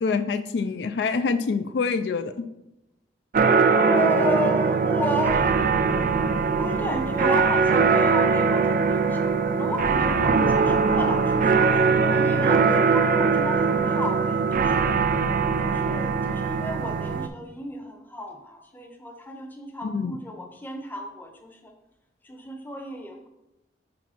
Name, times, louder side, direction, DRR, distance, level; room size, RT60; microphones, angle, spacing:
voice 1, 0.0-2.3 19.8-20.2, left 4 dB, 70° left, 11 dB, 0.3 m, -26 dB
sound 1, 3.3-17.3, right 5 dB, 50° right, 0.4 m, -21 dB
voice 2, 3.7-6.1 6.6-15.0 15.6-21.7 22.2-23.3, left 1 dB, 10° left, 4 dB, 0.7 m, -33 dB
5.1 x 4.5 x 5.7 m, 0.93 s
head